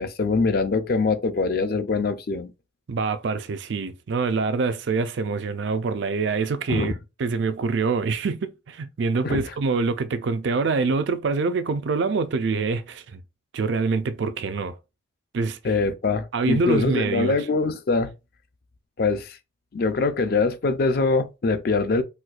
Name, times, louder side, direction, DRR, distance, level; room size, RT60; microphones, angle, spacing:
voice 1, 0.0-2.5 6.7-6.9 9.2-9.4 15.6-18.1 19.0-19.4 19.7-22.0, left 3 dB, 50° left, 0.4 m, -23 dB
voice 2, 2.9-6.9 7.2-13.2 13.5-14.8 15.3-15.6 16.3-17.4, right 4 dB, 60° right, 0.4 m, -25 dB
4.3 x 2.2 x 2.4 m
head